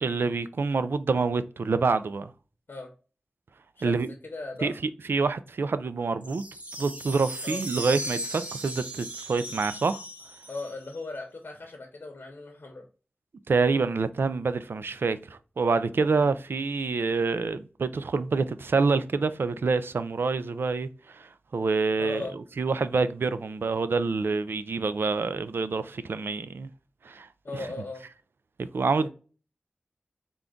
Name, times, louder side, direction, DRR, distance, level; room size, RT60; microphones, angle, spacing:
voice 1, 0.0-2.3 3.8-4.1 4.6-4.7 5.1-6.4 6.8-10.0 13.5-26.7 27.0-27.3 27.6-27.7 28.6-29.1, right 4 dB, 75° right, 0.3 m, -27 dB
voice 2, 4.2-4.7 7.4-7.6 10.5-12.8 16.1-16.3 22.0-22.4 27.4-28.0 29.0-29.1, left 3 dB, 75° left, 0.8 m, -37 dB
sound 1, 6.2-11.0, right 1 dB, 35° right, 1.0 m, -37 dB
3.7 x 2.3 x 3.6 m
wide cardioid pair, 50°, 4 cm